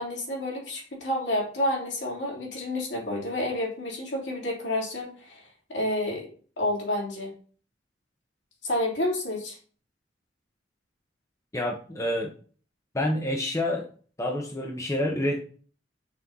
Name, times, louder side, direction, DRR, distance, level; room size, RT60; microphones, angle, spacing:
voice 1, 0.0-6.3 6.6-7.3 8.6-9.6, left 1 dB, 70° left, -2 dB, 3.1 m, -29 dB
voice 2, 11.5-12.3 12.9-13.9 14.2-15.4, left 1 dB, 15° left, 1 dB, 0.9 m, -28 dB
6.1 x 4.3 x 5.5 m, 0.41 s
head